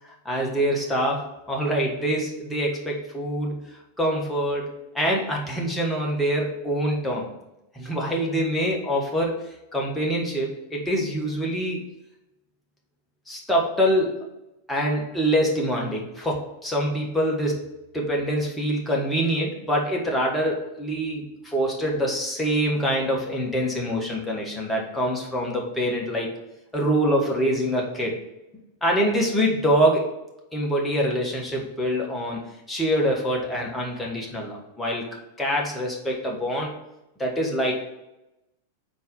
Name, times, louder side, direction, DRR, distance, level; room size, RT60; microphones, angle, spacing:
voice 1, 0.1-3.6 4.0-7.3 7.7-9.4 9.7-11.8 13.3-14.2 14.7-17.7 17.9-26.3 26.7-28.2 28.8-30.1 30.5-32.4 32.7-35.0 35.4-36.7 37.2-37.7, equal, 5° left, -2 dB, 1.3 m, -25 dB
4.6 x 4.0 x 5.4 m, 0.92 s
figure-of-eight pair, 90°, 0 cm